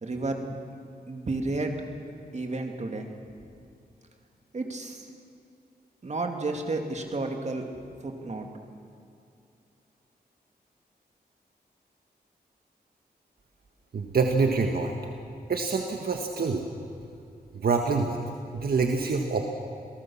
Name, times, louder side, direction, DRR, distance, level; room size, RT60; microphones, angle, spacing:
voice 1, 0.0-0.6 1.1-1.7 2.3-3.1 4.5-5.1 6.0-7.6 8.0-8.5, right 2 dB, 45° right, 3 dB, 2.6 m, -31 dB
voice 2, 13.9-14.9 15.5-16.6 17.5-18.2 18.5-19.4, right 4 dB, 65° right, 3 dB, 1.6 m, -26 dB
28.0 x 18.0 x 7.3 m, 2.5 s
wide cardioid pair, 105°, 17 cm